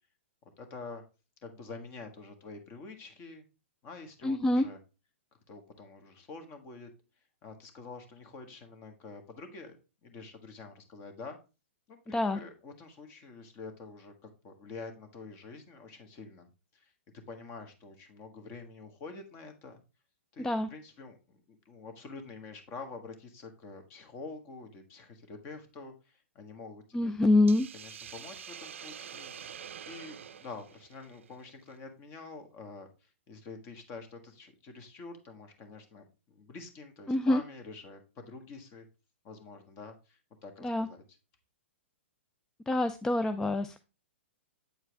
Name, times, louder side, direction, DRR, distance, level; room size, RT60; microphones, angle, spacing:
voice 1, 0.6-1.0 1.4-3.4 3.8-4.8 5.5-6.9 7.4-11.4 11.9-16.9 17.3-19.8 20.3-27.1 27.7-29.4 29.9-38.9 39.2-41.0, left 4 dB, 35° left, 6 dB, 1.5 m, -47 dB
voice 2, 4.2-4.7 12.1-12.4 20.4-20.7 26.9-27.7 37.1-37.4 40.6-40.9 42.7-43.8, left 2 dB, 10° left, 9 dB, 0.3 m, -26 dB
Hiss, 27.5-31.7, right 8 dB, 75° right, 0.5 m, -46 dB
8.3 x 4.5 x 3.3 m, 0.30 s
hypercardioid pair, 130°, 7 cm